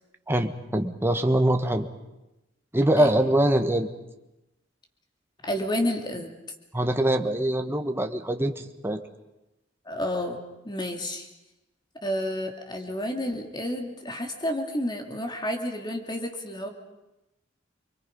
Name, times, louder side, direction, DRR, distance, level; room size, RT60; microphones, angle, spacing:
voice 1, 0.3-1.9 2.7-3.9 6.7-9.0, right 1 dB, 15° right, 6 dB, 1.3 m, -23 dB
voice 2, 5.4-6.3 9.9-11.3 12.0-16.7, left 1 dB, 25° left, 3 dB, 2.8 m, -30 dB
29.0 x 22.5 x 5.4 m, 0.97 s
head